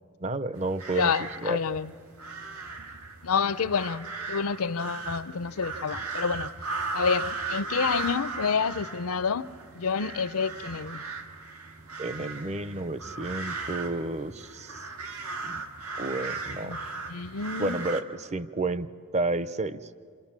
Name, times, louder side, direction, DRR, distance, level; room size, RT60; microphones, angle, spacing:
voice 1, 0.2-1.1 1.4-1.6 12.0-14.9 15.4-15.6 16.0-16.8 17.6-19.9, right 2 dB, 30° right, 0.7 m, -31 dB
sound 1, 0.6-18.0, right 3 dB, 75° right, 2.0 m, -37 dB
voice 2, 0.9-1.9 3.2-6.5 6.9-9.5 9.7-11.0 16.6-16.8 17.1-17.8, left 5 dB, 75° left, 0.6 m, -28 dB
27.5 x 27.5 x 7.4 m
head